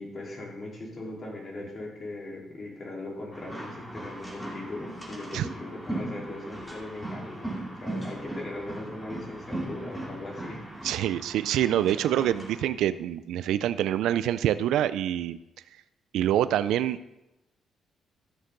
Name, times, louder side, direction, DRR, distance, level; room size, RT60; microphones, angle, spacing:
voice 1, 0.0-10.6, left 2 dB, 35° left, -3 dB, 3.8 m, -39 dB
sound 1, 3.3-12.6, right 1 dB, 5° left, 2.6 m, -38 dB
voice 2, 10.8-15.4 16.1-17.0, right 11 dB, 85° right, 14 dB, 0.3 m, -26 dB
14.0 x 6.5 x 3.8 m, 0.95 s
cardioid pair, 90°, 0 cm